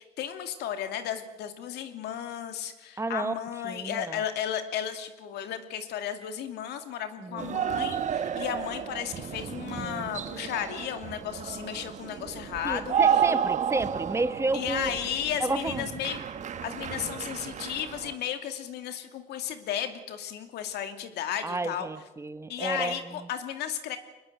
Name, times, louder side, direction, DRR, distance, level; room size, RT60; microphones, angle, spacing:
voice 1, 0.0-13.0 14.5-16.2 16.6-21.9 22.5-24.0, left 9 dB, 80° left, 7 dB, 2.6 m, -34 dB
voice 2, 3.0-3.3 3.6-4.2 7.2-7.6 9.7-10.1 12.6-14.9 15.4-15.9 21.4-22.9, right 2 dB, 15° right, 12 dB, 1.2 m, -31 dB
sound 1, 7.4-18.2, right 8 dB, 45° right, 1.4 m, -31 dB
23.5 x 20.5 x 7.9 m, 1.1 s
cardioid pair, 110°, 17 cm